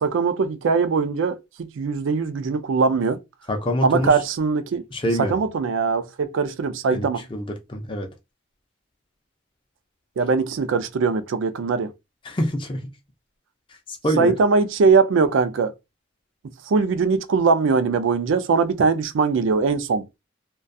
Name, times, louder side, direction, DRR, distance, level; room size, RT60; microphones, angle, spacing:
voice 1, 0.0-3.2 3.8-4.8 5.2-7.2 10.2-11.9 14.2-15.7 16.7-20.0, right 5 dB, 80° right, 0.4 m, -21 dB
voice 2, 3.5-4.2 4.9-5.4 6.9-8.1 12.2-12.9 13.7-14.3, equal, 25° left, 0.4 m, -26 dB
2.3 x 2.2 x 2.5 m
head